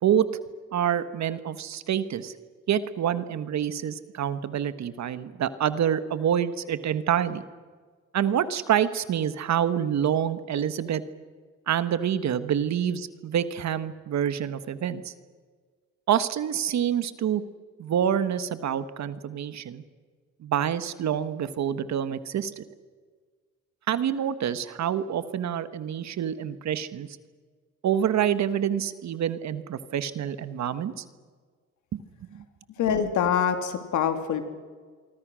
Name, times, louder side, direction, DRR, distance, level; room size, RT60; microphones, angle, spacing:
voice 1, 0.7-2.3 2.7-7.4 8.1-11.0 11.7-15.1 16.1-17.4 17.8-19.8 20.4-22.6 23.9-27.1 27.8-31.0 32.3-32.4, right 9 dB, 65° right, 13 dB, 1.4 m, -27 dB
voice 2, 32.8-34.4, left 8 dB, 75° left, 7 dB, 2.9 m, -25 dB
27.0 x 24.5 x 6.3 m, 1.5 s
cardioid pair, 90°, 30 cm